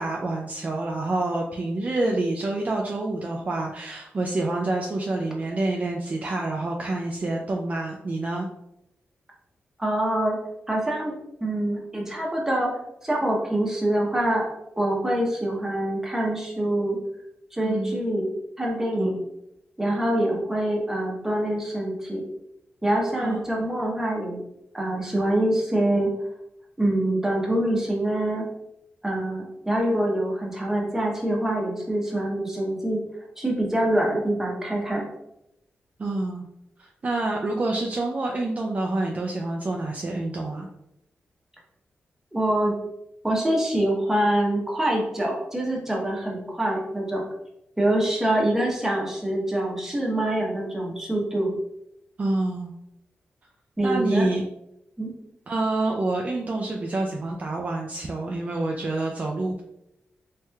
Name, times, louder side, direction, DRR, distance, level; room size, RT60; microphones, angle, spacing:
voice 1, 0.0-8.5 17.6-18.0 19.0-19.2 23.2-23.4 36.0-36.5 36.8-40.7 52.2-52.7 53.8-54.4 55.5-59.6, right 2 dB, 35° right, 0 dB, 0.3 m, -27 dB
voice 2, 9.8-10.4 10.7-11.1 11.4-12.7 13.0-14.5 14.8-17.0 17.5-18.3 18.6-19.2 19.8-22.2 22.8-24.4 24.7-26.1 26.8-28.4 29.0-33.0 33.4-35.1 42.3-42.7 43.2-47.2 47.8-51.5 53.8-54.3 55.0-55.1, right 1 dB, 10° right, -2 dB, 0.8 m, -25 dB
3.2 x 3.0 x 2.3 m, 0.83 s
wide cardioid pair, 105°, 4 cm